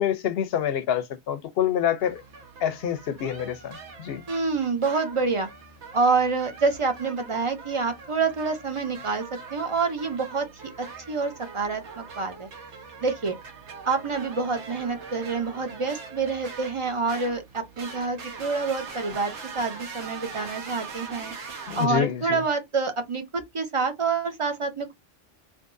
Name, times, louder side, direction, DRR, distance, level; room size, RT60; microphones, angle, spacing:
voice 1, 0.0-2.2 2.6-4.2 21.7-22.4, left 9 dB, 70° left, 0.8 m, -27 dB
sound 1, 2.0-21.9, right 4 dB, 90° right, 1.3 m, -42 dB
voice 2, 4.3-5.5 5.9-10.5 10.8-12.5 13.0-13.3 13.8-21.3 21.7-24.9, right 4 dB, 35° right, 0.6 m, -27 dB
3.5 x 2.8 x 2.5 m
omnidirectional pair, 1.1 m